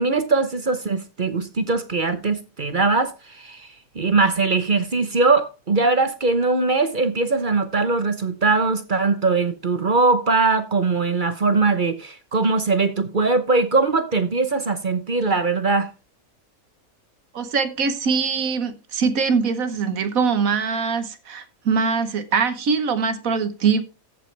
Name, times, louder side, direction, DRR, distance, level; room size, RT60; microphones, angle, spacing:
voice 1, 0.0-3.7 3.9-15.9, right 3 dB, 40° right, 1.0 m, -21 dB
voice 2, 17.3-23.8, right 5 dB, 75° right, 1.6 m, -22 dB
14.0 x 8.2 x 3.3 m
omnidirectional pair, 1.5 m